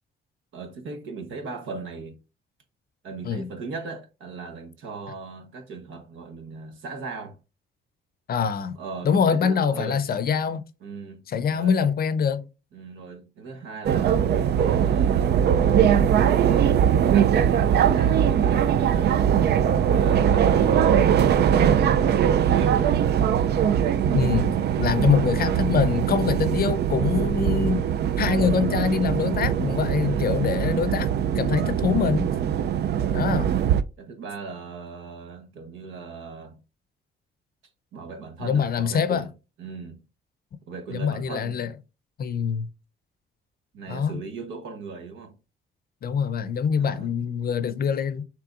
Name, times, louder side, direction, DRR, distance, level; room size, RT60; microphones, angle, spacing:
voice 1, 0.5-2.2 3.0-7.4 8.8-10.0 10.8-11.2 11.5-11.8 12.7-15.4 16.4-19.3 19.9-22.0 22.4-23.0 25.0-25.3 26.1-26.4 30.0-30.9 33.2-36.6 37.9-39.3 39.6-40.0 40.7-41.6 43.7-45.4 46.8-47.1, right 4 dB, 80° right, 1.1 m, -38 dB
voice 2, 8.3-8.8 9.0-10.6 11.3-12.4 24.1-27.8 28.2-32.3 33.1-33.5 38.4-39.2 40.9-41.7 42.2-42.7 43.9-44.2 46.0-48.2, left 6 dB, 50° left, 0.6 m, -24 dB
sound 1, 13.8-33.8, right 9 dB, 55° right, 0.4 m, -21 dB
6.0 x 3.4 x 2.5 m
cardioid pair, 90°, 20 cm